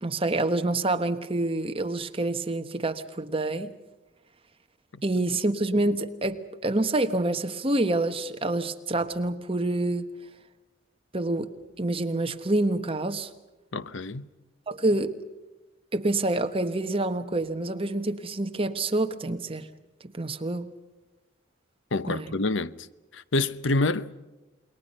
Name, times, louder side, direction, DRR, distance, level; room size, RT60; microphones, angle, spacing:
voice 1, 0.0-3.7 5.0-10.1 11.1-13.3 14.7-15.2 15.9-19.7 20.2-20.7 22.1-22.3, right 2 dB, 30° right, 1.3 m, -27 dB
voice 2, 13.7-14.3 21.9-22.8 23.1-24.2, left 2 dB, 80° left, 0.8 m, -27 dB
28.5 x 22.0 x 5.5 m
head